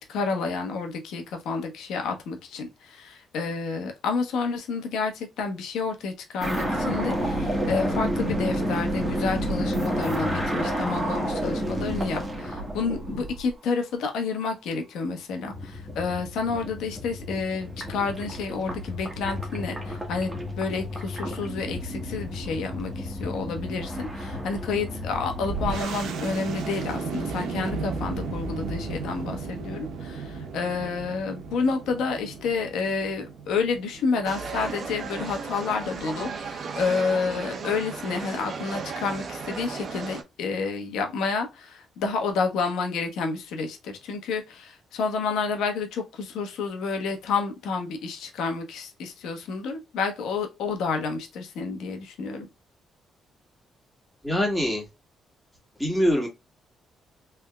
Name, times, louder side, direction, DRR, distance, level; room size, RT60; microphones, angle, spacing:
voice 1, 0.1-20.3 20.6-52.5, left 4 dB, 85° left, 1.1 m, -30 dB
sound 1, 6.4-13.5 15.5-25.8, equal, 15° right, 1.5 m, -30 dB
sound 2, 25.5-34.7, right 4 dB, 80° right, 0.8 m, -34 dB
sound 3, 34.2-40.2, right 5 dB, 50° right, 0.8 m, -35 dB
voice 2, 54.2-54.8 55.8-56.3, equal, ahead, 2.1 m, -23 dB
3.5 x 3.5 x 2.2 m
cardioid pair, 90°, 0 cm